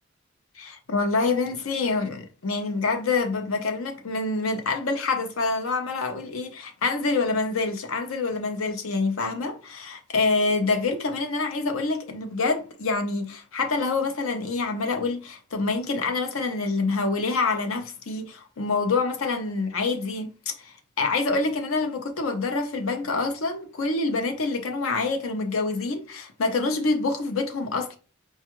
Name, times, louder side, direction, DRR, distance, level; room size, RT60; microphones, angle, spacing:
voice 1, 0.6-28.0, left 3 dB, 75° left, 0.6 m, -26 dB
4.5 x 2.3 x 2.9 m
head